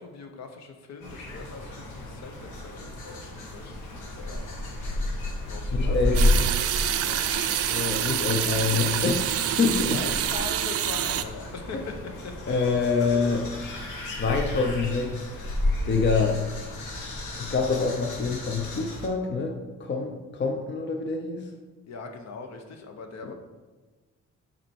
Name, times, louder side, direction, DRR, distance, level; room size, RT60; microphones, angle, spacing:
voice 1, 0.0-4.5 4.8-5.0 5.5-7.3 9.9-13.5 21.9-23.3, left 4 dB, 60° left, 5 dB, 0.9 m, -41 dB
sound 1, 1.0-19.1, left 1 dB, 80° left, 1.3 m, -32 dB
voice 2, 5.7-6.3 7.7-9.2 9.6-10.0 11.7-11.8 12.5-13.4 14.0-15.3 15.8-16.5 17.4-21.5 23.2-23.3, left 4 dB, 40° left, 4 dB, 0.6 m, -26 dB
sound 2, 6.1-11.2, right 10 dB, 50° right, 0.5 m, -27 dB
6.0 x 4.2 x 4.5 m, 1.3 s
cardioid pair, 90°, 30 cm